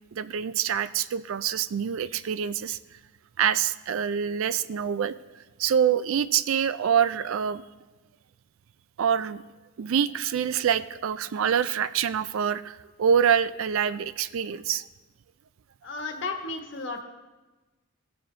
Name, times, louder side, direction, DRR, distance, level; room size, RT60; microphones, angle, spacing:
voice 1, 0.1-2.8 3.4-5.1 5.6-7.6 9.0-9.4 9.8-14.8, right 8 dB, 70° right, 15 dB, 0.4 m, -25 dB
voice 2, 15.8-17.0, left 3 dB, 55° left, 3 dB, 1.2 m, -33 dB
17.0 x 6.9 x 3.2 m, 1.2 s
head